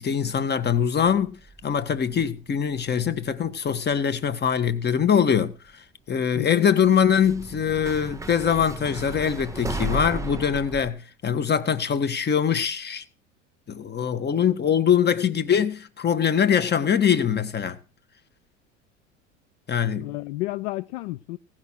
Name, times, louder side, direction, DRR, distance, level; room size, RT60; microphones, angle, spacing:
voice 1, 0.0-5.8 6.1-13.0 13.7-17.8 19.7-20.1, left 8 dB, 25° left, 1.5 m, -23 dB
sound 1, 1.1-3.0 3.3-4.0 5.1-5.2 6.8-10.9, right 3 dB, 10° right, 1.1 m, -35 dB
voice 2, 6.4-6.7 20.0-21.4, left 19 dB, 60° left, 0.6 m, -31 dB
17.5 x 6.1 x 6.5 m
hypercardioid pair, 75°, 37 cm